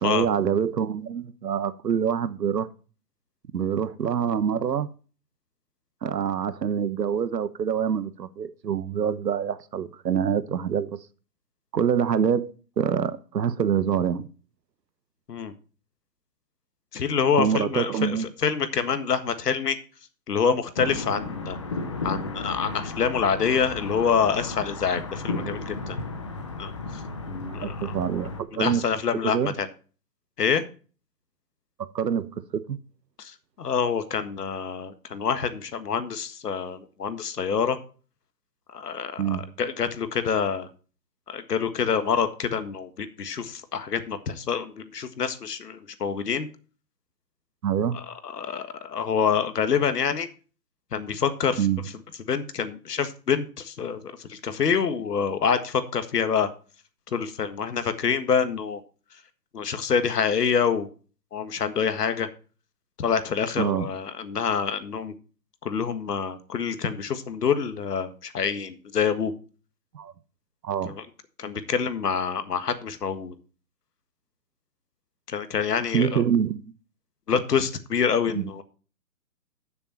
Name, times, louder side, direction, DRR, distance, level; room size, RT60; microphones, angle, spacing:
voice 1, 0.0-2.7 3.5-4.9 6.0-11.0 11.7-14.3 17.4-18.3 25.4-25.6 27.6-28.9 29.2-29.5 31.8-32.8 39.2-39.5 47.6-48.0 51.6-51.8 63.6-63.9 69.9-70.1 70.6-70.9 75.9-76.6 78.3-78.5, right 8 dB, 75° right, 1.2 m, -26 dB
voice 2, 16.9-19.8 20.3-21.6 22.0-26.0 26.6-27.0 27.3-27.9 28.5-29.7 30.4-30.6 33.2-37.8 38.7-39.2 39.6-40.7 41.3-46.5 47.9-50.3 50.9-51.7 52.3-56.5 57.1-58.8 59.5-60.9 61.3-62.3 63.0-65.1 65.6-69.3 70.8-71.0 71.4-73.3 75.3-76.2 77.3-78.6, left 6 dB, 70° left, 1.7 m, -26 dB
sound 1, 20.8-28.4, left 3 dB, 20° left, 0.6 m, -34 dB
12.5 x 7.0 x 4.3 m
hypercardioid pair, 155°, 49 cm